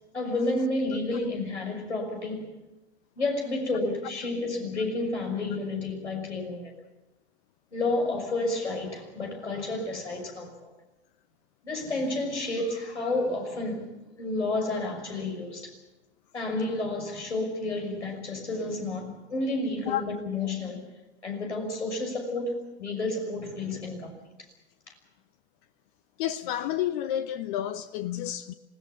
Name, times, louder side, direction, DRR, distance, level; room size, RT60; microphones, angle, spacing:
voice 1, 0.1-2.5 3.2-6.7 7.7-10.7 11.6-13.9 14.2-15.7 16.3-20.8 21.2-24.1, left 2 dB, 80° left, 6.1 m, -30 dB
voice 2, 26.2-28.5, left 11 dB, 45° left, 1.0 m, -30 dB
27.0 x 17.5 x 7.2 m
figure-of-eight pair, 95°, 34 cm